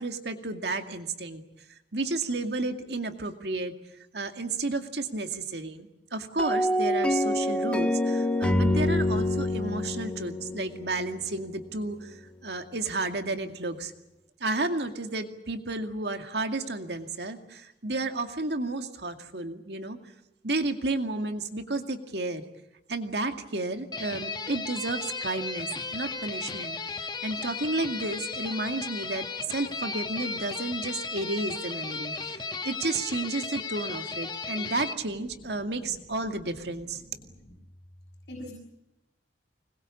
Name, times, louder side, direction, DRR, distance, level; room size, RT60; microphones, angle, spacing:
voice 1, 0.0-1.4 1.9-3.7 4.1-13.9 14.4-20.0 20.4-22.4 22.9-27.0 27.2-37.0, right 2 dB, 65° right, 6 dB, 2.3 m, -32 dB
sound 1, 6.4-11.6, left 1 dB, 5° left, 1.6 m, -26 dB
sound 2, 23.9-34.9, left 4 dB, 25° left, 1.3 m, -35 dB
voice 2, 37.2-37.5 38.3-38.5, left 1 dB, 60° left, -1 dB, 6.9 m, -43 dB
25.0 x 21.5 x 8.6 m, 0.89 s
head